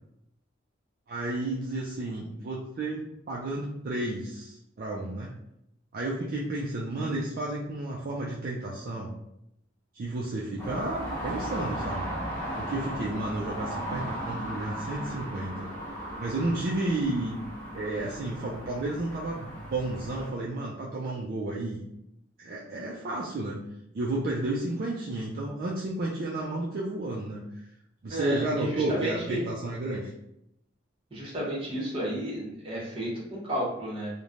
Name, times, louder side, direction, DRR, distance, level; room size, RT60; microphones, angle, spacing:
voice 1, 1.1-5.3 5.9-9.1 9.9-12.1 12.6-15.7 16.2-17.4 17.7-21.8 22.4-23.6 23.9-27.6 28.0-30.1, right 2 dB, 50° right, -4 dB, 0.4 m, -32 dB
sound 1, 10.6-20.3, equal, 10° left, 0.7 m, -36 dB
voice 2, 28.1-29.4 31.1-34.1, right 1 dB, 30° right, -5 dB, 0.9 m, -32 dB
3.1 x 2.1 x 2.5 m, 0.81 s
head